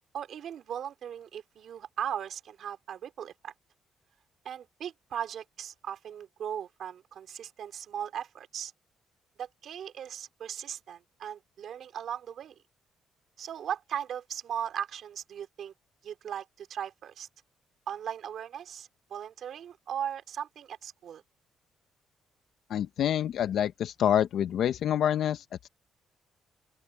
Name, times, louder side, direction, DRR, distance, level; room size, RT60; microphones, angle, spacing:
voice 1, 0.0-3.5 4.4-8.7 9.4-12.6 13.4-15.7 16.0-17.3 17.9-21.2, right 9 dB, 65° right, 2.7 m, -38 dB
voice 2, 22.7-25.7, left 10 dB, 70° left, 0.8 m, -27 dB
open air
cardioid pair, 90°, 0 cm